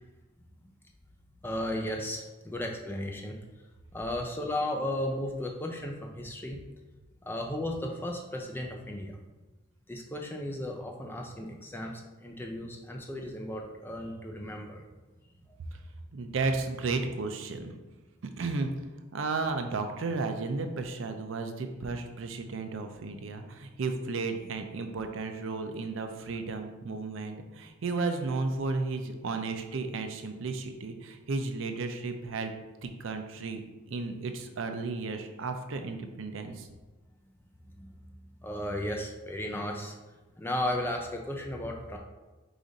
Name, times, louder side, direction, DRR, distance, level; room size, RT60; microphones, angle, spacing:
voice 1, 1.4-3.4 3.9-6.6 7.2-9.2 9.9-14.8 15.5-15.6 37.8-37.9 38.4-40.0 40.4-42.0, left 1 dB, 10° left, 1 dB, 0.4 m, -35 dB
voice 2, 16.1-17.7 18.4-18.7 19.1-32.5 32.8-33.6 33.9-36.7, right 3 dB, 65° right, 6 dB, 0.5 m, -33 dB
5.0 x 2.5 x 4.0 m, 1.2 s
head